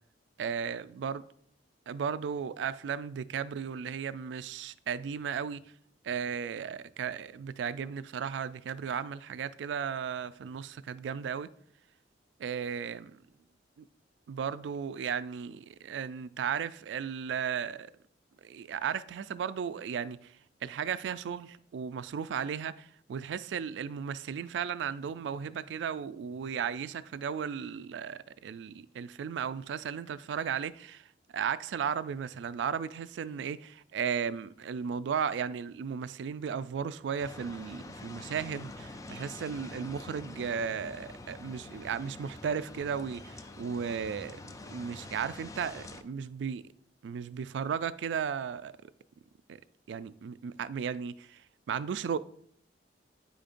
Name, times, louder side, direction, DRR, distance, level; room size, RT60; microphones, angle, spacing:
voice 1, 0.4-1.2 1.9-5.6 6.0-11.5 12.4-13.1 13.8-13.9 14.3-17.9 18.4-20.3 20.6-31.0 31.3-44.4 44.7-46.6 47.0-48.7 49.5-49.6 49.9-51.4 51.7-52.2, right 7 dB, 75° right, 0.3 m, -35 dB
sound 1, 37.2-46.0, left 2 dB, 20° left, 0.3 m, -46 dB
8.6 x 5.1 x 2.5 m
head